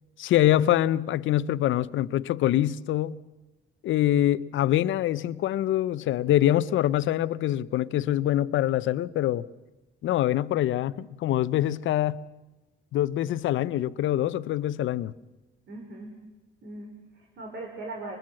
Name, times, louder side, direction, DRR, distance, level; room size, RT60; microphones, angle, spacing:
voice 1, 0.2-3.2 3.8-9.5 10.0-12.2 12.9-15.1, left 13 dB, 75° left, 0.7 m, -24 dB
voice 2, 15.7-16.2 16.6-18.2, right 2 dB, 60° right, 4.3 m, -39 dB
23.5 x 20.5 x 7.6 m
cardioid pair, 90°, 20 cm